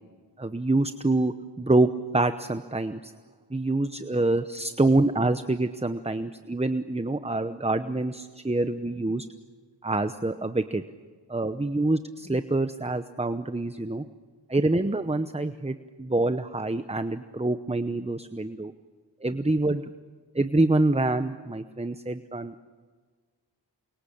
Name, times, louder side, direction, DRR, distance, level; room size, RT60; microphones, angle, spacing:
voice 1, 0.4-3.1 3.5-9.3 9.8-10.8 11.3-14.0 14.5-18.7 19.2-19.8 20.3-22.6, right 2 dB, 15° right, 10 dB, 0.8 m, -26 dB
28.5 x 24.0 x 8.6 m, 1.5 s
wide cardioid pair, 50°, 43 cm